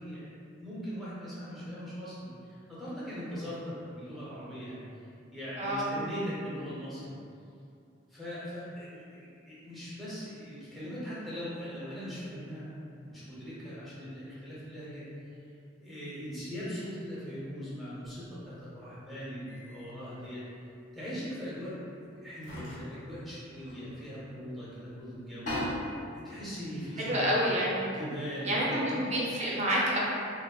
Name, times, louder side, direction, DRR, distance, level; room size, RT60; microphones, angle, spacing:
voice 1, 0.0-4.8 5.3-7.1 8.1-15.4 15.8-20.4 20.9-21.7 22.2-26.0 26.2-27.5 27.8-29.0, equal, ahead, -10 dB, 0.7 m, -40 dB
voice 2, 5.6-5.9 27.0-27.9 28.5-30.0, equal, 35° right, -5 dB, 0.5 m, -28 dB
sound 1, 19.5-19.8 20.2-20.3 21.6-21.7 22.3-24.5 24.8-24.9 25.2-27.7, left 1 dB, 40° left, 0.9 m, -40 dB
3.3 x 2.0 x 2.3 m, 2.5 s
head